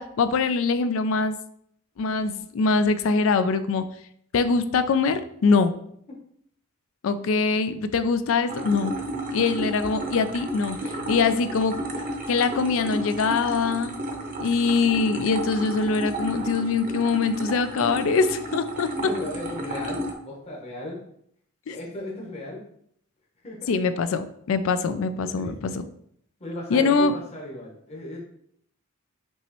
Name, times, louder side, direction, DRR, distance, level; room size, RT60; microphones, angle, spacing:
voice 1, 0.0-1.4 2.0-3.8 4.3-5.7 7.0-8.9 9.3-10.8 11.1-11.8 12.3-13.9 14.4-18.9 21.7-21.8 23.7-25.8 26.7-27.1, left 4 dB, 65° left, 11 dB, 0.4 m, -23 dB
sound 1, 8.5-20.1, right 1 dB, 40° right, 0.7 m, -32 dB
voice 2, 19.0-21.0 21.7-22.6 23.4-23.7 25.2-25.9 26.4-28.2, left 1 dB, 30° left, -3 dB, 1.0 m, -36 dB
5.4 x 3.0 x 3.0 m, 0.68 s
head